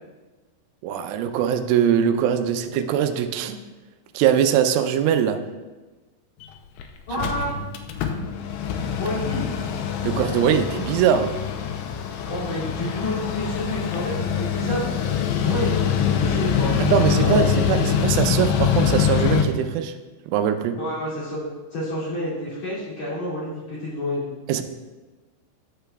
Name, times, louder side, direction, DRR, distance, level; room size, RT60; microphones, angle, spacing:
voice 1, 0.8-3.6 4.1-5.4 7.2-7.3 10.0-11.3 16.9-19.9 20.3-20.8 24.5-24.6, right 8 dB, 90° right, 8 dB, 3.2 m, -21 dB
Mechanical fan, 6.4-6.5 6.8-6.9 7.1-19.4, left 8 dB, 90° left, 2.4 m, -24 dB
voice 2, 7.1-7.5 9.0-9.5 12.2-14.9 15.4-17.6 20.8-24.3, left 1 dB, 40° left, -9 dB, 3.1 m, -29 dB
11.5 x 6.8 x 2.3 m, 1.2 s
omnidirectional pair, 5.6 m